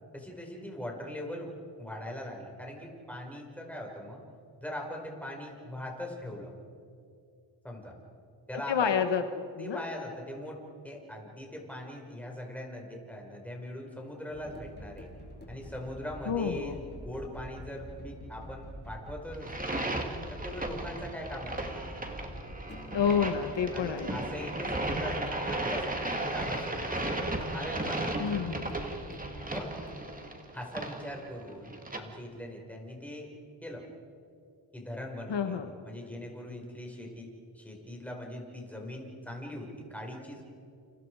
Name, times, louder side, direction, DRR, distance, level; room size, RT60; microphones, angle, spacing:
voice 1, 0.1-1.5 1.8-4.2 4.6-6.5 7.6-8.0 8.5-8.9 9.6-15.1 15.5-19.9 20.3-21.9 23.7-27.0 27.5-28.5 29.5-29.7 30.5-33.3 33.6-33.8 34.7-35.6 35.8-37.3 37.5-40.4, left 1 dB, 5° left, 0 dB, 5.3 m, -41 dB
voice 2, 8.7-9.2 9.6-9.8 16.3-16.8 22.9-24.2 28.2-28.7 35.3-35.7, left 7 dB, 65° left, 7 dB, 1.5 m, -29 dB
sound 1, 14.3-30.0, equal, 20° left, 5.0 m, -46 dB
sound 2, 19.3-32.0, right 2 dB, 20° right, 2.5 m, -35 dB
29.5 x 29.0 x 4.9 m, 2.4 s
wide cardioid pair, 105°, 46 cm